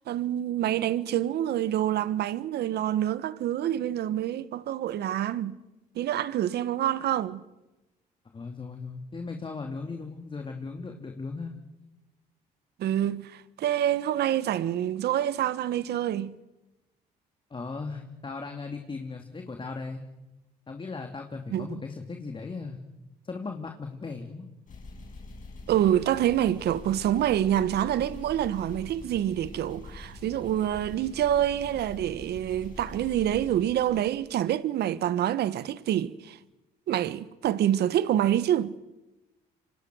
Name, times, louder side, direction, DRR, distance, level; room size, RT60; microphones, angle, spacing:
voice 1, 0.1-5.6 5.9-7.4 12.8-16.3 21.5-21.7 25.7-36.4 36.9-38.7, right 11 dB, 70° right, 1.2 m, -27 dB
voice 2, 8.3-11.5 17.5-20.0 20.7-22.8 23.2-24.5, left 4 dB, 30° left, 2.7 m, -37 dB
sound 1, 24.7-34.5, left 2 dB, 45° left, 6.8 m, -44 dB
28.0 x 25.0 x 6.3 m
supercardioid pair, 70°, 18 cm